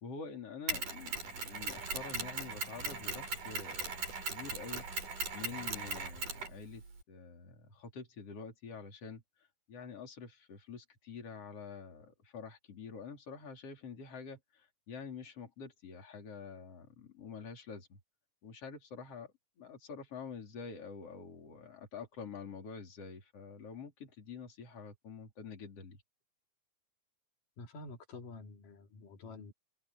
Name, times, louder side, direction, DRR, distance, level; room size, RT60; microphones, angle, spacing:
voice 1, 0.0-3.9 4.3-4.9 5.3-6.8 7.1-9.2 9.7-18.0 18.4-26.0, left 5 dB, 45° left, 4.7 m, -47 dB
Mechanisms, 0.7-7.0, right 3 dB, 75° right, 7.5 m, -39 dB
voice 2, 27.6-29.5, left 3 dB, 85° left, 4.6 m, -48 dB
open air
omnidirectional pair, 3.7 m